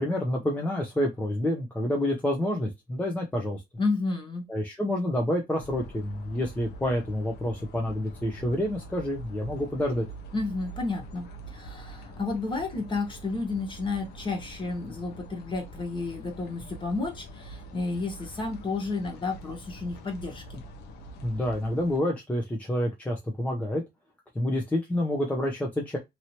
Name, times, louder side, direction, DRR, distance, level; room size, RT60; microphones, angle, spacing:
voice 1, 0.0-3.6 4.5-10.0 21.2-23.8 24.3-26.0, left 1 dB, 10° left, 0.7 m, -28 dB
voice 2, 3.8-4.5 10.3-20.6, left 3 dB, 30° left, 1.3 m, -31 dB
sound 1, 5.6-22.0, right 1 dB, 75° left, 0.8 m, -45 dB
2.9 x 2.8 x 2.9 m
cardioid pair, 110°, 17 cm